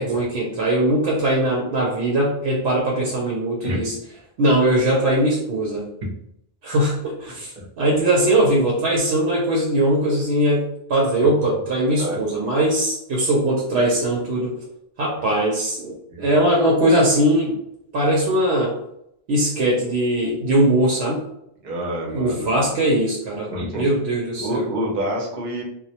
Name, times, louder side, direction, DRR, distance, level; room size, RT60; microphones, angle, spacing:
voice 1, 0.0-3.9 4.4-5.8 6.6-14.5 15.0-17.6 17.9-18.7 19.3-21.2 22.1-23.5 23.8-24.7, right 1 dB, 85° right, -3 dB, 0.9 m, -20 dB
voice 2, 21.6-22.9 23.5-23.9 24.4-25.6, equal, 50° right, -2 dB, 0.7 m, -28 dB
2.2 x 2.1 x 2.7 m, 0.77 s
omnidirectional pair, 1.1 m